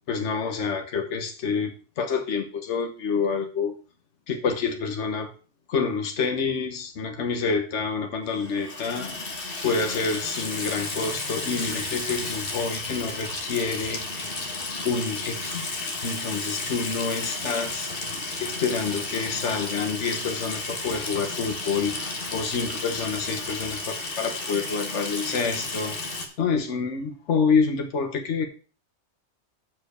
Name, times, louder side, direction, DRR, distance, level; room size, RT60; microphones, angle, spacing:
voice 1, 0.1-3.7 4.3-5.3 5.7-9.1 9.6-14.3 14.8-15.7 16.0-17.9 18.4-26.0 26.4-28.5, left 5 dB, 75° left, 5 dB, 1.4 m, -28 dB
Water tap faucet / Sink (filling or washing), 8.3-26.3, left 3 dB, 50° left, 1.7 m, -33 dB
7.5 x 4.9 x 6.6 m, 0.37 s
omnidirectional pair, 1.2 m